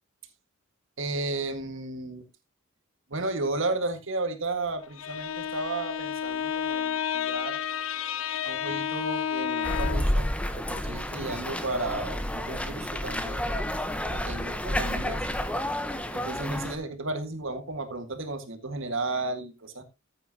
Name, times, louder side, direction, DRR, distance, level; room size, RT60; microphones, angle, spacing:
voice 1, 1.0-2.3 3.1-7.6 8.4-13.5 14.1-15.2 16.1-19.8, right 2 dB, 65° right, 8 dB, 1.8 m, -33 dB
Bowed string instrument, 4.8-10.2, left 8 dB, 75° left, 0.6 m, -31 dB
sound 1, 9.6-16.7, left 1 dB, 5° left, 1.0 m, -30 dB
13.5 x 8.8 x 2.8 m, 0.24 s
head